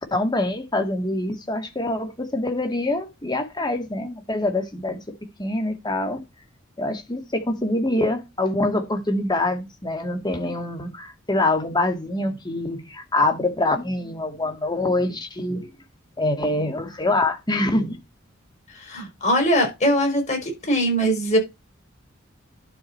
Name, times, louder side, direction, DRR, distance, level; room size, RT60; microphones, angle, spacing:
voice 1, 0.1-5.0 5.4-6.2 6.8-15.7 16.2-18.0, left 2 dB, 20° left, 2.1 m, -25 dB
voice 2, 18.7-21.4, equal, 35° left, 5.3 m, -21 dB
11.5 x 4.7 x 4.6 m
head